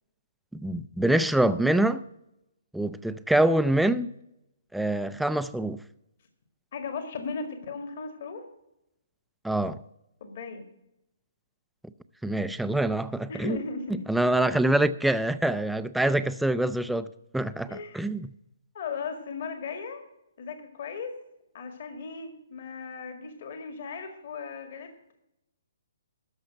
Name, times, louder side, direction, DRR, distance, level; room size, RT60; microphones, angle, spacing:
voice 1, 0.5-2.0 2.7-4.1 4.7-5.8 9.4-9.8 12.2-13.6 14.1-17.1 17.3-18.3, right 1 dB, ahead, 0.4 m, -25 dB
voice 2, 6.7-8.4 10.2-10.7 13.3-14.0 17.7-18.0 18.7-20.0 20.4-21.1 21.5-25.1, left 4 dB, 55° left, 2.0 m, -37 dB
13.0 x 5.7 x 7.7 m
hypercardioid pair, 150°, 0 cm